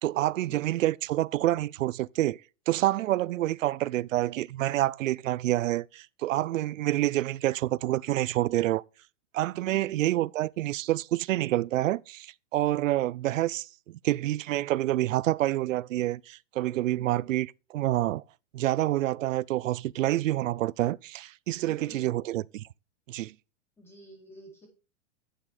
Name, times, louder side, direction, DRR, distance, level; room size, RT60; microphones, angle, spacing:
voice 1, 0.0-2.4 2.7-8.8 9.3-18.2 18.5-22.7 23.1-23.3, right 15 dB, 90° right, 0.5 m, -28 dB
voice 2, 9.7-10.2 16.9-17.3 21.6-22.1 23.8-24.7, equal, 5° left, 4.6 m, -51 dB
11.0 x 8.3 x 4.9 m
supercardioid pair, 165°, 37 cm